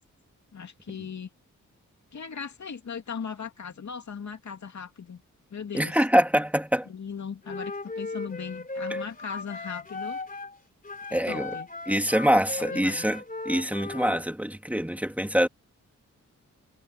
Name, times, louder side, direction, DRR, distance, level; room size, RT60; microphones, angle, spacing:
voice 1, 0.5-1.3 2.1-5.2 5.5-6.0 6.9-10.2 11.1-11.7 12.6-13.0, left 6 dB, 60° left, 2.8 m, -38 dB
voice 2, 5.7-6.9 11.1-11.6 11.9-15.5, equal, 5° right, 3.2 m, -24 dB
Wind instrument woodwind instrument, 7.5-10.6 10.8-14.2, left 2 dB, 25° left, 3.9 m, -37 dB
cardioid pair, 55°, 32 cm